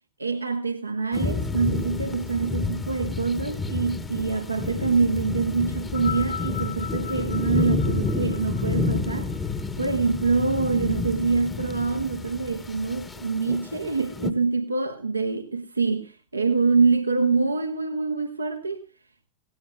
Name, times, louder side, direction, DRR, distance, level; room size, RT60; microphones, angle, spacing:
voice 1, 0.2-9.3 9.8-18.9, right 4 dB, 80° right, 1.0 m, -25 dB
sound 1, 1.1-14.3, left 4 dB, 15° left, 1.1 m, -30 dB
sound 2, 5.8-10.4 11.3-11.4, left 8 dB, 70° left, 5.2 m, -38 dB
18.0 x 17.0 x 2.3 m
figure-of-eight pair, 90°, 0 cm